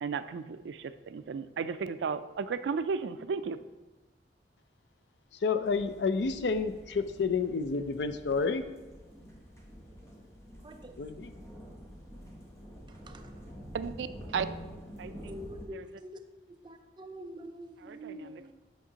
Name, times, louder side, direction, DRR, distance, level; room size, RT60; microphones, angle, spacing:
voice 1, 0.0-3.6 13.7-14.5 15.0-15.4 15.7-15.9 17.8-18.5, right 5 dB, 85° right, 12 dB, 0.3 m, -35 dB
voice 2, 5.4-8.6 11.0-11.3, left 4 dB, 75° left, 11 dB, 0.4 m, -30 dB
sound 1, 5.6-15.7, equal, 15° left, 0.9 m, -48 dB
voice 3, 10.6-10.9 13.1-13.3 15.3-16.2 16.5-18.5, equal, 25° right, 5 dB, 0.5 m, -45 dB
8.4 x 5.7 x 2.8 m, 1.1 s
head